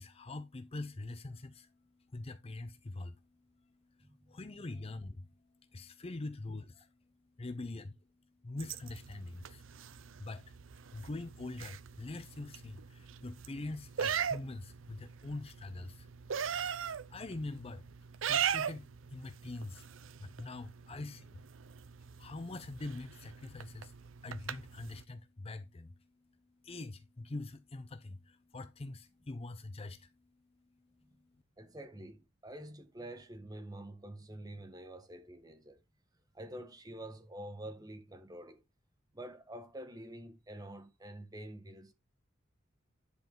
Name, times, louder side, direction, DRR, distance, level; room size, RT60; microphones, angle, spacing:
voice 1, 0.0-1.7 2.1-3.2 4.0-5.3 5.7-6.9 7.4-8.0 8.4-9.6 9.9-10.6 10.9-16.1 17.1-17.9 18.2-19.9 20.2-21.4 22.2-23.9 24.2-26.0 26.6-30.1, left 2 dB, 30° left, 0.6 m, -44 dB
voice 2, 4.0-4.4 31.0-31.2 31.6-35.8 36.3-38.6 39.1-41.9, right 1 dB, 20° right, 1.4 m, -47 dB
sound 1, 8.6-25.0, right 8 dB, 70° right, 0.6 m, -40 dB
10.5 x 4.7 x 3.8 m
head